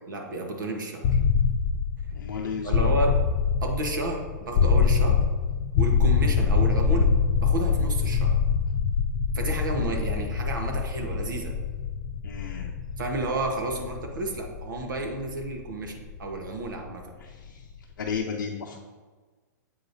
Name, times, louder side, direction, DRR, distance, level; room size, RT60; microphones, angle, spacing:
voice 1, 0.1-1.2 2.6-3.2 3.6-5.2 5.8-7.1 7.4-8.4 9.3-11.5 13.0-17.1, right 2 dB, 85° right, 2 dB, 1.2 m, -31 dB
sound 1, 1.0-16.9, left 6 dB, 45° left, 0.4 m, -25 dB
voice 2, 2.1-3.0 12.2-12.8 17.2-17.7 18.0-18.8, left 6 dB, 90° left, 0 dB, 0.6 m, -34 dB
7.7 x 4.9 x 2.7 m, 1.4 s
hypercardioid pair, 135°, 10 cm